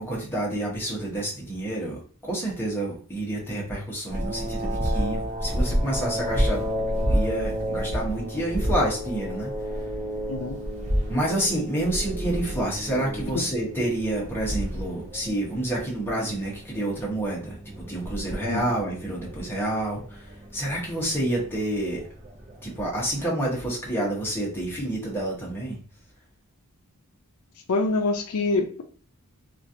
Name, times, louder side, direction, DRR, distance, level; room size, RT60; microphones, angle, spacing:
voice 1, 0.0-6.7 7.1-9.5 11.1-17.6 17.9-22.1 22.6-25.8, right 1 dB, 10° left, -4 dB, 0.9 m, -29 dB
sound 1, 4.1-23.2, equal, 30° right, 0.7 m, -30 dB
voice 2, 27.7-28.8, left 3 dB, 75° left, 5 dB, 0.5 m, -25 dB
3.0 x 2.4 x 2.6 m, 0.41 s
head